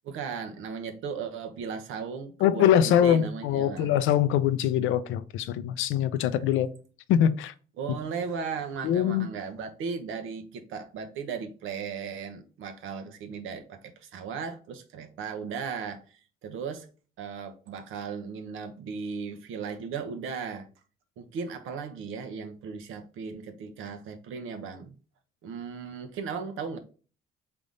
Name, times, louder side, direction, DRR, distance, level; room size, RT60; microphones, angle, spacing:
voice 1, 0.0-3.9 6.4-6.5 7.8-16.9 17.2-20.7 21.2-24.9 25.4-26.8, right 6 dB, 85° right, 0.9 m, -36 dB
voice 2, 2.4-6.7 7.1-7.5 8.8-9.3, left 10 dB, 90° left, 0.5 m, -23 dB
3.7 x 3.5 x 3.8 m
cardioid pair, 90°, 20 cm